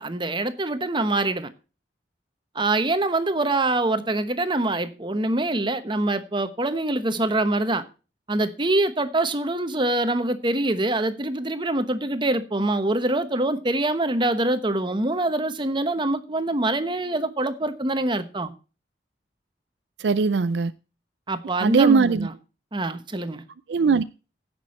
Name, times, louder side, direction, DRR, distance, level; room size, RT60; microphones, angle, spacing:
voice 1, 0.0-1.5 2.5-7.8 8.3-18.5 21.3-22.3 22.7-23.4, right 2 dB, 25° right, 1.0 m, -24 dB
voice 2, 20.0-20.7 21.6-22.3 23.7-24.0, right 5 dB, 75° right, 0.4 m, -20 dB
16.0 x 6.3 x 4.2 m
head